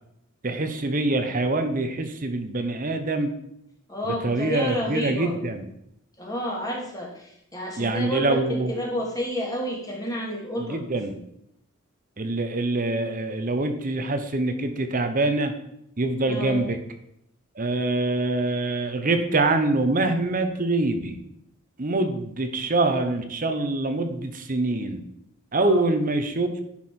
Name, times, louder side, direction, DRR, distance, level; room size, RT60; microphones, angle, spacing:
voice 1, 0.4-3.3 4.0-5.6 7.8-8.8 10.6-11.1 12.2-15.5 16.0-16.8 17.6-21.2 21.8-25.0 25.5-26.6, right 2 dB, 40° right, 7 dB, 0.8 m, -25 dB
voice 2, 3.9-5.4 6.2-10.8 16.2-16.7 25.5-26.0, equal, 15° left, -2 dB, 1.9 m, -30 dB
10.5 x 5.7 x 4.4 m, 0.76 s
head